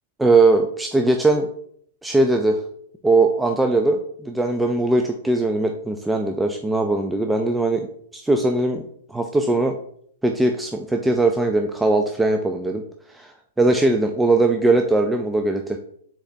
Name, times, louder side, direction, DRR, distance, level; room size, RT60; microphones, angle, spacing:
voice 1, 0.2-1.5 2.0-2.6 3.0-7.9 8.1-8.8 9.1-9.8 10.2-12.8 13.1-13.3 13.6-15.8, right 2 dB, 5° right, 3 dB, 0.3 m, -20 dB
4.8 x 4.2 x 2.6 m, 0.65 s
hypercardioid pair, 125°, 0 cm